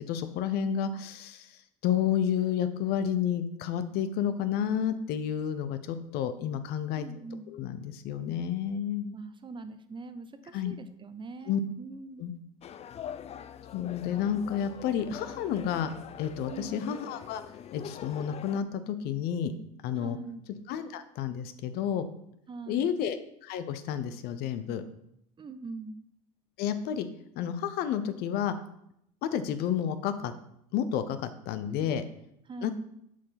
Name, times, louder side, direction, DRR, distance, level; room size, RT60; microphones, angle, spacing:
voice 1, 0.0-1.5 1.8-7.1 7.5-9.1 10.5-10.7 11.5-11.6 12.2-12.3 13.7-15.9 16.2-17.4 17.7-19.5 19.8-20.2 20.7-22.1 22.7-24.8 26.6-27.1 27.4-28.5 29.2-30.3 30.7-32.0 32.6-32.7, left 9 dB, 60° left, 11 dB, 0.8 m, -30 dB
voice 2, 7.0-7.5 9.1-12.3 16.5-17.0 20.0-20.4 22.5-23.0 25.4-26.1 31.7-31.9 32.5-32.7, right 3 dB, 25° right, 10 dB, 0.8 m, -43 dB
sound 1, 12.6-18.6, left 9 dB, 35° left, 0.5 m, -43 dB
7.3 x 4.5 x 5.8 m, 0.74 s
hypercardioid pair, 75°, 18 cm